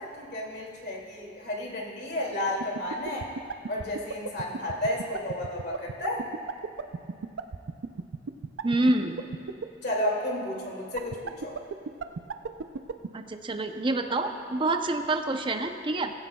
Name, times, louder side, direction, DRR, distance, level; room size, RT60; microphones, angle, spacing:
voice 1, 0.0-3.3 3.7-6.3 9.8-11.5, left 1 dB, 60° left, -2 dB, 2.4 m, -32 dB
sound 1, 2.5-9.6 11.0-13.1, right 5 dB, 80° right, 0.5 m, -32 dB
voice 2, 8.6-9.2 13.1-16.1, right 2 dB, 25° right, 6 dB, 0.6 m, -27 dB
17.5 x 15.5 x 2.3 m, 2.6 s
head